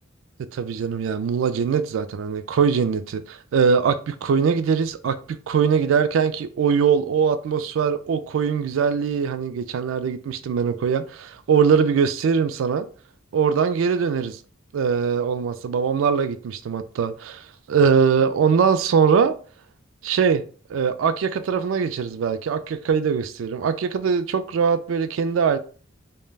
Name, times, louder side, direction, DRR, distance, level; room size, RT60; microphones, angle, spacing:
voice 1, 0.5-12.9 13.3-14.4 14.7-19.3 20.0-20.4 20.7-25.6, right 6 dB, 75° right, 0.3 m, -22 dB
3.2 x 2.1 x 2.3 m
head